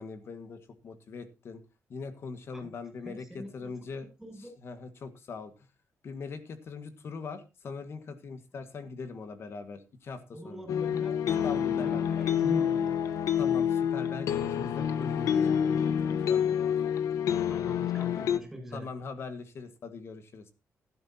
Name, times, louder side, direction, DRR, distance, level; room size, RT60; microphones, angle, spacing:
voice 1, 0.0-1.6 1.9-4.1 4.6-5.5 6.0-10.7 11.4-12.0 13.4-16.7 18.7-20.5, left 4 dB, 50° left, 10 dB, 1.6 m, -41 dB
voice 2, 3.0-3.7 4.2-4.5 10.3-11.1 11.4-13.0 17.5-18.9, right 1 dB, 5° right, 4 dB, 7.7 m, -42 dB
sound 1, 10.7-18.4, left 8 dB, 85° left, 1.2 m, -28 dB
15.0 x 12.5 x 2.8 m, 0.29 s
cardioid pair, 145°, 5 cm